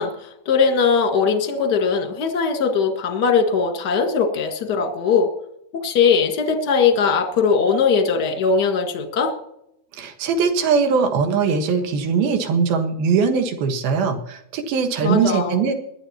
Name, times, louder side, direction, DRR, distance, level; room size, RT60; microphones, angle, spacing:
voice 1, 0.0-5.3 5.7-9.3 15.0-15.6, left 5 dB, 40° left, 4 dB, 1.5 m, -20 dB
voice 2, 10.0-15.7, right 5 dB, 75° right, 5 dB, 3.3 m, -21 dB
20.0 x 12.5 x 2.9 m, 0.79 s
omnidirectional pair, 4.4 m